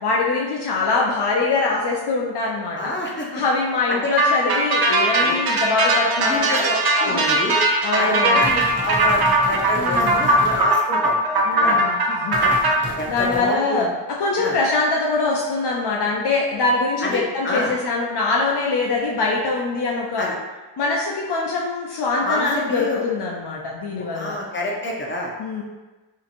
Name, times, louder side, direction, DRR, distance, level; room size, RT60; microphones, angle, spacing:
voice 1, 0.0-2.9 3.3-6.7 7.0-7.2 7.8-8.4 9.8-10.4 11.4-12.4 13.1-20.3 20.8-24.4 25.4-25.6, left 3 dB, 60° left, -2 dB, 0.5 m, -23 dB
voice 2, 2.8-3.3 3.9-4.0 4.4-4.5 5.2-5.4 6.2-7.6 8.0-11.8 12.4-12.6 13.0-13.9 14.4-14.6 17.0-17.7 20.2-20.4 22.2-23.0 24.0-25.3, left 1 dB, 25° left, -2 dB, 0.7 m, -27 dB
sound 1, 4.2-12.7, right 1 dB, 55° right, 0.6 m, -19 dB
sound 2, 8.4-10.7 12.3-13.4, right 1 dB, 25° right, 0.9 m, -32 dB
2.9 x 2.5 x 2.5 m, 1.2 s
cardioid pair, 45°, 45 cm